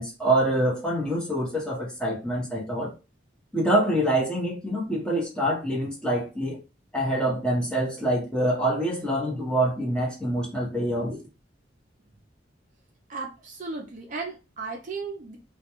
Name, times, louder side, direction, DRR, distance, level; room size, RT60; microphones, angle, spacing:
voice 1, 0.0-2.9 3.5-6.6 6.9-11.2, right 1 dB, 5° left, 0.7 m, -25 dB
voice 2, 13.1-15.4, right 4 dB, 40° right, 0.4 m, -35 dB
2.2 x 2.1 x 2.9 m
head